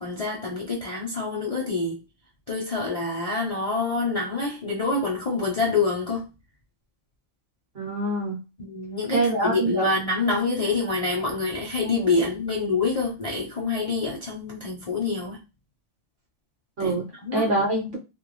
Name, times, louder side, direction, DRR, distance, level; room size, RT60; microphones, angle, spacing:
voice 1, 0.0-2.0 2.5-6.3 8.6-15.4 16.8-16.9 17.2-17.5, left 3 dB, 40° left, 0.5 m, -26 dB
voice 2, 7.7-8.4 9.1-9.9 16.8-17.0 17.3-18.0, right 2 dB, 50° right, 0.9 m, -24 dB
2.5 x 2.2 x 3.0 m
omnidirectional pair, 1.4 m